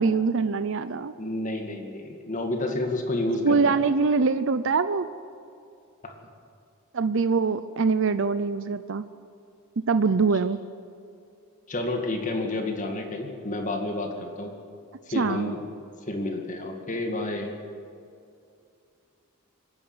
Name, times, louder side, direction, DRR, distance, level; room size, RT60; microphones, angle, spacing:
voice 1, 0.0-1.1 3.4-5.1 6.9-9.0 9.8-10.6 15.2-15.5, right 4 dB, 60° right, 13 dB, 0.6 m, -23 dB
voice 2, 1.2-3.8 6.0-6.1 11.7-14.5 15.1-15.6 16.1-17.5, left 2 dB, 35° left, 3 dB, 2.1 m, -30 dB
25.5 x 10.5 x 9.7 m, 2.5 s
head